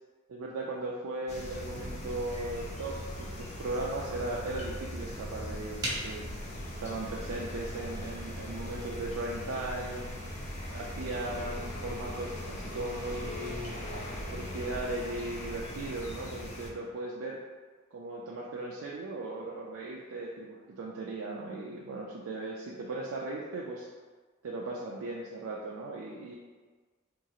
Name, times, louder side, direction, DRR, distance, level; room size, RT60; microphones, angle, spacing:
voice 1, 0.3-6.2 6.8-10.1 10.7-13.8 14.3-17.4 17.9-23.9 24.4-26.4, right 2 dB, 75° right, -4 dB, 0.4 m, -37 dB
sound 1, 1.3-16.7, left 1 dB, 35° left, 0.5 m, -40 dB
sound 2, 5.8-14.9, equal, 20° right, 0.7 m, -44 dB
3.6 x 2.9 x 2.4 m, 1.4 s
head